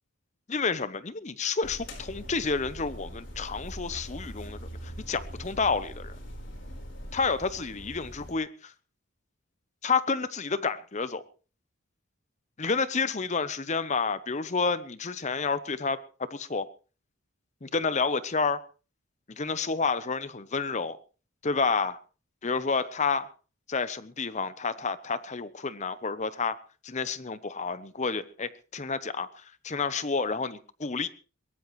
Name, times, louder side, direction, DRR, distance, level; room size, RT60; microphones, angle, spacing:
voice 1, 0.5-6.2 7.1-8.7 9.8-11.2 12.6-16.0 16.3-16.7 17.6-18.6 19.3-21.0 21.4-22.0 22.4-23.3 23.7-26.6 26.8-31.1, left 4 dB, 35° left, 0.8 m, -30 dB
sound 1, 1.6-8.3, equal, 60° left, 4.3 m, -42 dB
22.5 x 18.0 x 3.2 m
head